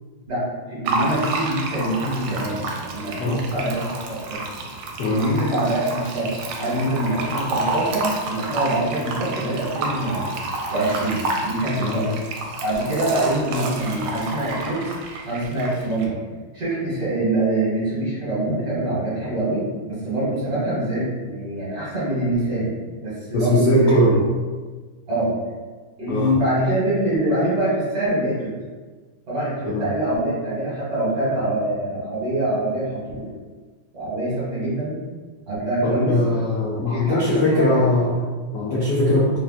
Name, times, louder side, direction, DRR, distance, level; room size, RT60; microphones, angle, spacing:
voice 1, 0.3-4.5 5.0-6.3 6.6-10.3 10.7-12.1 12.6-14.9 15.2-16.2 16.5-22.7 23.0-24.2 25.1-25.3 26.0-28.6 29.3-33.3 33.9-35.0 35.5-36.2 36.9-37.8, right 1 dB, 50° right, -9 dB, 1.5 m, -24 dB
Fill (with liquid), 0.9-16.1, right 2 dB, 80° right, 1.4 m, -29 dB
voice 2, 5.0-5.3 11.8-12.1 23.3-24.2 26.1-26.3 29.7-29.8 35.8-39.4, left 1 dB, 80° left, -6 dB, 0.9 m, -20 dB
3.8 x 2.2 x 2.4 m, 1.4 s
omnidirectional pair, 2.4 m